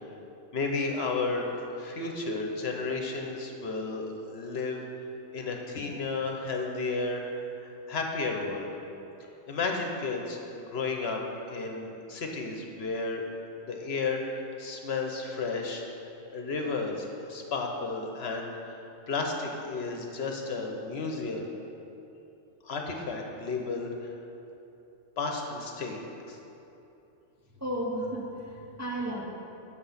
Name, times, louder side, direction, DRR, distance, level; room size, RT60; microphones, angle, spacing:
voice 1, 0.5-1.5 1.8-4.8 5.3-7.2 7.9-8.7 9.5-11.2 11.5-13.2 13.6-15.8 16.3-21.5 22.6-24.1 25.2-26.0 26.3-26.4, left 3 dB, 60° left, 2 dB, 1.0 m, -32 dB
voice 2, 27.6-29.2, right 1 dB, 15° right, -3 dB, 0.6 m, -33 dB
6.2 x 5.9 x 7.2 m, 2.9 s
omnidirectional pair, 1.3 m